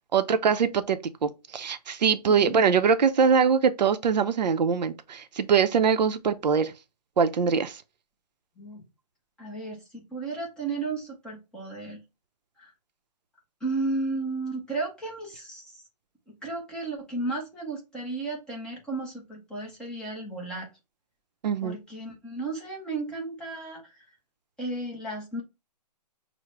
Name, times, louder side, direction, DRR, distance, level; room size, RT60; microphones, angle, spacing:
voice 1, 0.1-6.7 7.2-7.8 21.4-21.8, right 6 dB, 80° right, 0.6 m, -23 dB
voice 2, 9.4-12.0 12.6-12.7 13.6-15.8 16.3-20.7 21.6-24.0 24.6-25.4, right 3 dB, 5° left, 0.6 m, -34 dB
5.9 x 2.0 x 3.1 m
hypercardioid pair, 160°, 21 cm